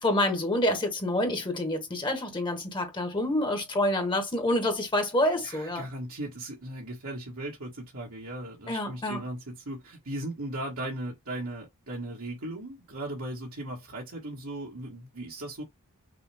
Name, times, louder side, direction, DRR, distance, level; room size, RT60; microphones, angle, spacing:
voice 1, 0.0-5.9 8.7-9.2, left 1 dB, 20° left, 1.2 m, -27 dB
voice 2, 5.4-15.6, right 1 dB, 70° right, 1.6 m, -37 dB
6.0 x 2.2 x 3.5 m
head